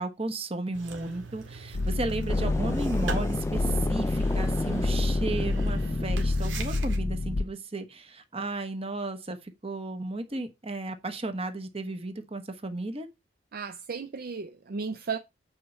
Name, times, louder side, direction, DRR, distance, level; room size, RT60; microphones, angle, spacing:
voice 1, 0.0-13.1, right 2 dB, 30° right, 1.1 m, -34 dB
sound 1, 0.7-7.0, right 4 dB, 75° right, 1.9 m, -42 dB
sound 2, 1.7-7.4, left 2 dB, 55° left, 0.6 m, -28 dB
sound 3, 2.3-6.5, left 1 dB, 15° left, 0.4 m, -33 dB
voice 2, 13.5-15.2, right 5 dB, 50° right, 0.4 m, -34 dB
8.4 x 4.3 x 5.6 m
head